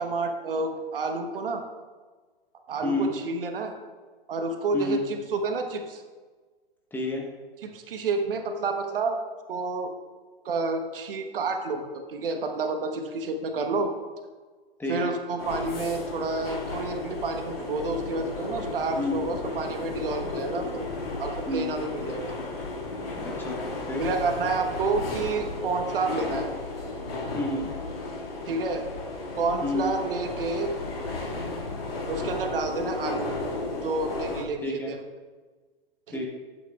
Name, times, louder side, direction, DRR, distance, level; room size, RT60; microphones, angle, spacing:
voice 1, 0.0-1.6 2.7-3.7 4.3-6.0 7.6-9.2 9.5-9.9 10.4-13.9 14.9-20.9 21.2-22.4 24.0-26.5 28.5-28.8 29.4-30.7 32.1-33.3 33.8-35.0 36.1-36.3, right 3 dB, 65° right, 5 dB, 1.2 m, -29 dB
voice 2, 2.8-3.2 4.7-5.0 6.9-7.3 14.8-15.1 19.0-19.2 21.5-21.7 23.2-24.1 27.3-27.8 29.6-29.9 34.6-34.9 36.1-36.3, left 2 dB, 5° left, -1 dB, 1.1 m, -30 dB
sound 1, 15.4-34.4, left 2 dB, 70° left, 2.1 m, -34 dB
11.5 x 8.5 x 2.4 m, 1.4 s
hypercardioid pair, 120°, 30 cm